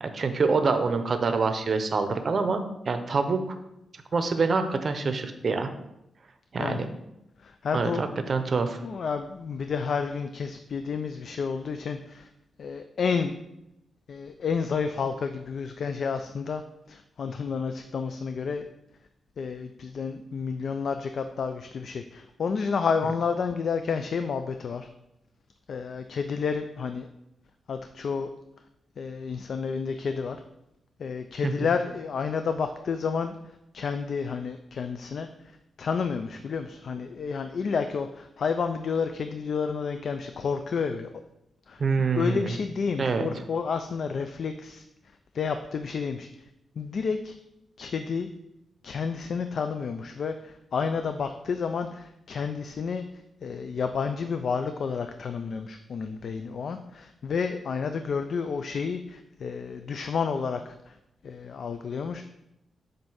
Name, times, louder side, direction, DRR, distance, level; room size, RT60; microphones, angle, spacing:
voice 1, 0.0-3.6 4.1-5.7 6.5-6.9 7.7-8.8 31.4-31.5 41.8-42.6 43.0-43.3, right 4 dB, 45° right, 8 dB, 0.6 m, -26 dB
voice 2, 7.4-8.0 8.8-12.3 12.6-13.3 14.1-16.6 16.9-18.6 19.4-24.9 25.7-27.1 27.7-28.3 29.0-30.4 31.0-33.4 33.7-35.3 35.8-41.1 41.7-41.8 42.1-44.8 45.3-46.3 46.8-47.4 47.8-48.3 48.8-53.0 53.4-61.0 61.2-62.2, left 5 dB, 60° left, 8 dB, 0.3 m, -30 dB
7.6 x 2.6 x 5.5 m, 0.87 s
wide cardioid pair, 120°, 0 cm